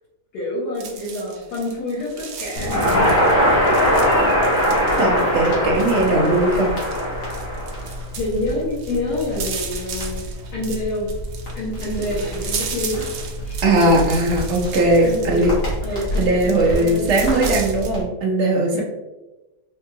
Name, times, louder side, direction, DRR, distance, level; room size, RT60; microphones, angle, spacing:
voice 1, 0.3-2.8 8.1-10.2 10.5-11.1 11.5-13.6 15.0-15.5 15.8-17.7 18.7-18.8, left 1 dB, 85° left, -8 dB, 1.6 m, -27 dB
sound 1, 0.8-17.9, right 6 dB, 80° right, 1.2 m, -35 dB
Crackle, 2.6-18.0, equal, 60° left, 1.6 m, -23 dB
voice 2, 5.0-6.7 13.6-15.5 16.2-18.8, right 2 dB, 55° right, -2 dB, 1.0 m, -19 dB
4.4 x 2.3 x 2.9 m, 1.0 s
omnidirectional pair, 1.7 m